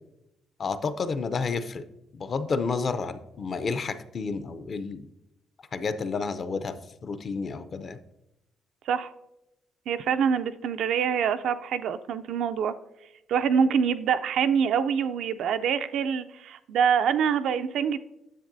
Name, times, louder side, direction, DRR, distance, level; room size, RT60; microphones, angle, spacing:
voice 1, 0.6-1.8 2.1-5.1 5.7-6.8 7.0-8.0, left 4 dB, 45° left, 12 dB, 0.5 m, -30 dB
voice 2, 9.9-12.7 13.3-18.0, right 7 dB, 75° right, 11 dB, 0.4 m, -25 dB
10.0 x 7.2 x 2.6 m, 0.91 s
cardioid pair, 90°, 0 cm